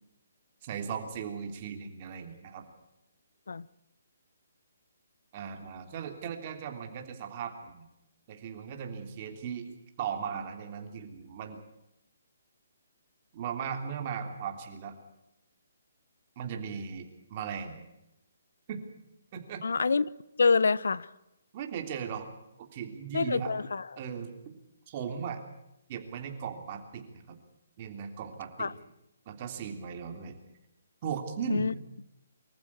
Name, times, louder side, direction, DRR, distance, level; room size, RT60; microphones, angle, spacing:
voice 1, 0.6-2.7 5.3-7.8 8.3-9.6 10.0-11.6 13.3-15.0 16.4-17.9 18.7-18.8 19.3-19.6 21.5-22.3 22.6-23.5 24.0-24.6 24.9-25.4 25.9-27.4 27.8-28.7 29.3-30.3 31.0-31.7, right 7 dB, 30° right, 3.2 m, -37 dB
voice 2, 19.6-20.1 20.4-21.1 23.1-23.9 28.6-28.7 31.5-31.7, left 4 dB, 85° left, 0.8 m, -26 dB
24.5 x 14.5 x 8.7 m
hypercardioid pair, 165°, 0 cm